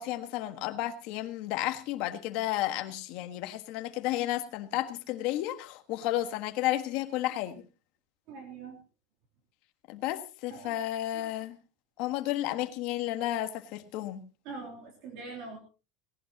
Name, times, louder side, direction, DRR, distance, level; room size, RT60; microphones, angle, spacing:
voice 1, 0.0-7.6 9.9-11.6 12.0-14.2, left 14 dB, 45° left, 1.5 m, -32 dB
voice 2, 8.3-8.8 10.5-10.8 11.1-11.2 14.4-15.6, right 4 dB, 45° right, 3.4 m, -43 dB
18.5 x 17.5 x 2.9 m
supercardioid pair, 180°, 2 cm